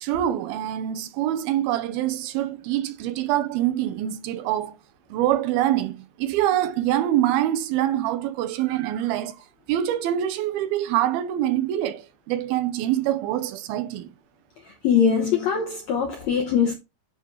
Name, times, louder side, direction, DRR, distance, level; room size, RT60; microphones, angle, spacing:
voice 1, 0.0-4.8 5.1-9.4 9.7-14.1, right 12 dB, 85° right, 2.5 m, -25 dB
voice 2, 14.7-16.7, left 7 dB, 75° left, 1.5 m, -22 dB
9.4 x 3.8 x 4.5 m
omnidirectional pair, 4.5 m